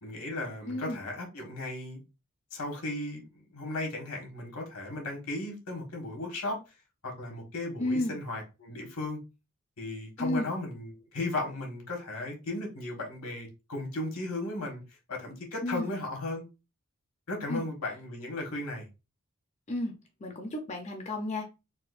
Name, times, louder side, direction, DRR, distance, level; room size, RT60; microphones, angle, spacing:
voice 1, 0.0-2.0 2.5-6.6 7.0-9.2 9.8-14.8 15.1-16.4 17.3-18.9, left 2 dB, 90° left, 1.4 m, -36 dB
voice 2, 0.7-1.0 7.8-8.2 10.2-10.5 15.6-16.0 17.5-17.6 19.7-19.9 20.2-21.4, left 1 dB, 30° left, 0.4 m, -32 dB
4.2 x 2.2 x 2.4 m
head